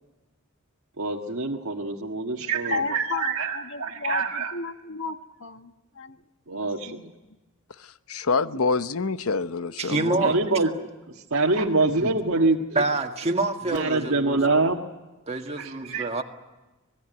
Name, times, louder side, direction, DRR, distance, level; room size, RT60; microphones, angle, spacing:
voice 1, 1.0-4.5 6.5-7.1 10.2-10.9 11.3-12.8 13.7-14.8 15.6-16.1, right 3 dB, 75° right, 1.6 m, -25 dB
voice 2, 2.7-6.2 6.5-7.1, left 4 dB, 65° left, 1.3 m, -34 dB
voice 3, 7.8-10.3, left 4 dB, 85° left, 0.9 m, -27 dB
voice 4, 9.8-10.4 12.8-14.4 15.3-16.2, right 2 dB, 30° right, 1.8 m, -26 dB
25.5 x 19.5 x 9.2 m
head